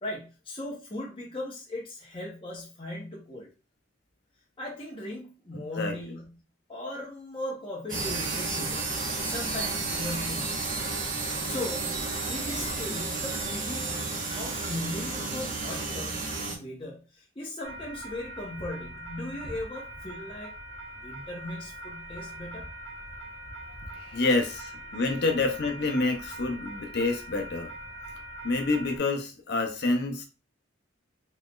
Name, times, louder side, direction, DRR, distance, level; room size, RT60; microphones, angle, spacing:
voice 1, 0.0-3.5 4.6-6.3 6.7-9.0 9.2-10.7 11.4-12.0 12.3-13.9 14.3-20.5 21.0-22.7 23.9-24.3, left 1 dB, 25° left, 0.9 m, -38 dB
voice 2, 5.7-6.1 24.1-27.7 28.4-30.2, left 3 dB, 55° left, 0.6 m, -28 dB
sound 1, 7.9-16.6, right 3 dB, 45° right, 1.2 m, -32 dB
sound 2, 17.6-29.0, right 1 dB, 75° right, 0.9 m, -42 dB
4.0 x 3.0 x 2.4 m
head